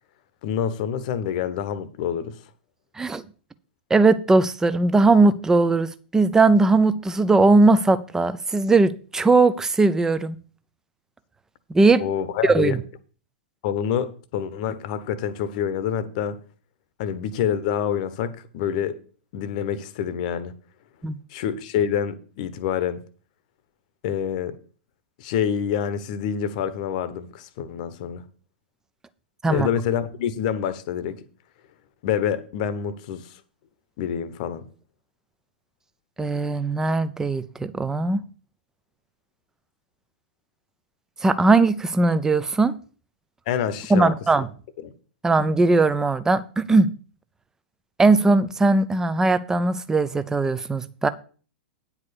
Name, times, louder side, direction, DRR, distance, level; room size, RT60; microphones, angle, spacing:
voice 1, 0.4-2.4 12.0-12.8 13.6-16.4 17.0-19.0 19.3-20.5 21.3-23.0 24.0-24.6 25.2-28.2 29.5-31.2 32.0-33.3 34.0-34.7 43.5-44.1 44.8-44.9, left 8 dB, 45° left, 1.0 m, -27 dB
voice 2, 3.9-10.4 11.7-12.0 12.5-12.8 21.0-21.2 29.4-29.7 36.2-38.2 41.2-42.7 43.9-44.5 45.2-46.9 48.0-51.1, right 3 dB, 10° right, 0.6 m, -19 dB
9.5 x 4.9 x 6.9 m
figure-of-eight pair, 105°, 6 cm